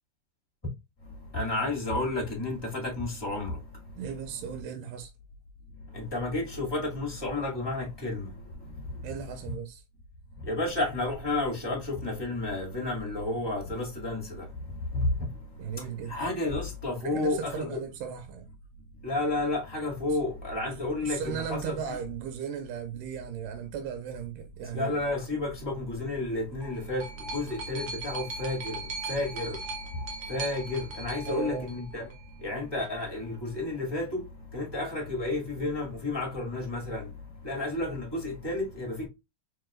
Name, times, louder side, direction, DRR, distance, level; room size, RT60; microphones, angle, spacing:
voice 1, 1.3-3.5 5.9-8.3 10.5-14.4 14.9-15.1 16.1-17.8 19.0-21.8 24.7-27.0 27.3-28.8 29.1-29.6 30.3-32.1 32.4-34.2 34.5-37.0 37.4-39.1, left 2 dB, 10° left, 1.3 m, -31 dB
voice 2, 3.9-5.1 9.0-9.8 15.6-16.2 17.0-18.5 20.1-20.2 21.0-25.0 31.3-31.8, right 8 dB, 90° right, 2.3 m, -36 dB
sound 1, 26.3-32.3 33.2-33.3, right 3 dB, 65° right, 1.4 m, -39 dB
4.7 x 4.5 x 2.3 m
omnidirectional pair, 3.8 m